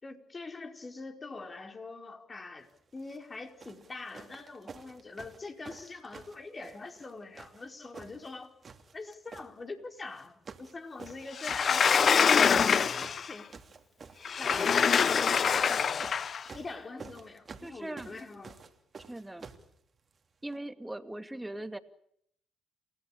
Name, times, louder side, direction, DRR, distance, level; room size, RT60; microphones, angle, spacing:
voice 1, 0.0-8.5 8.9-13.5 14.4-15.5 16.5-18.6, left 3 dB, 35° left, 5 dB, 4.6 m, -44 dB
sound 1, 3.0-3.2 3.6-7.1 7.3-8.3 8.6-9.5 10.1-10.7 11.0-19.7 20.5-20.6, right 5 dB, 45° right, 2.8 m, -49 dB
Sliding door, 11.4-13.3 14.3-16.4, left 6 dB, 50° left, 1.0 m, -25 dB
voice 2, 17.6-18.2 19.1-19.5 20.4-21.8, right 1 dB, 10° right, 9 dB, 2.4 m, -40 dB
29.0 x 17.5 x 8.8 m, 0.71 s
supercardioid pair, 55°, 0 cm